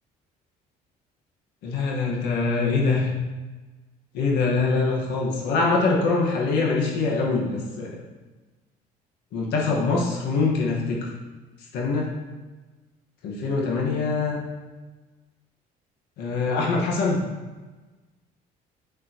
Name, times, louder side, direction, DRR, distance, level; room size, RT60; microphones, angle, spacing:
voice 1, 1.6-3.1 4.1-7.9 9.3-11.1 11.7-12.1 13.2-14.4 16.2-17.2, left 3 dB, 80° left, -2 dB, 1.7 m, -24 dB
8.9 x 6.8 x 3.1 m, 1.2 s
cardioid pair, 110°, 17 cm